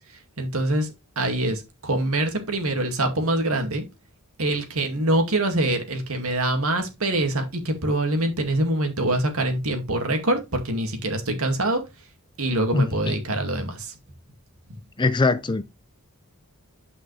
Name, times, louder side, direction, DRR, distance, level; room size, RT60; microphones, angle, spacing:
voice 1, 0.4-3.8 4.4-11.8 12.4-13.9, right 1 dB, 70° right, 2.3 m, -24 dB
voice 2, 12.7-13.1 15.0-15.6, left 3 dB, 20° left, 0.5 m, -22 dB
9.6 x 5.6 x 3.3 m
head